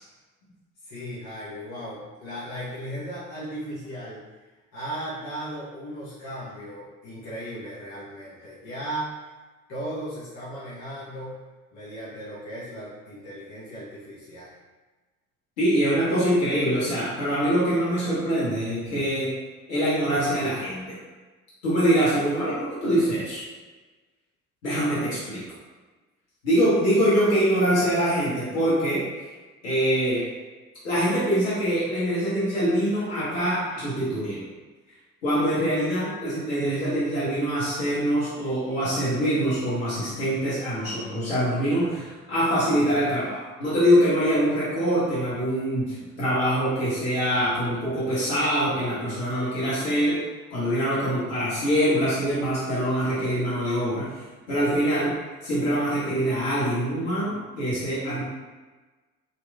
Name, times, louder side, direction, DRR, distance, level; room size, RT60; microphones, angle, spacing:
voice 1, 0.8-4.2 4.7-9.2 9.7-11.4 11.7-14.5 20.9-21.0, right 1 dB, 45° left, -10 dB, 1.0 m, -36 dB
voice 2, 15.6-19.3 19.7-20.8 21.6-23.4 24.6-25.4 26.4-29.3 29.6-30.2 30.8-34.4 35.2-50.2 50.5-54.1 54.5-55.1 55.4-58.2, equal, 75° left, -10 dB, 1.1 m, -24 dB
2.9 x 2.7 x 2.2 m, 1.3 s
figure-of-eight pair, 55°, 41 cm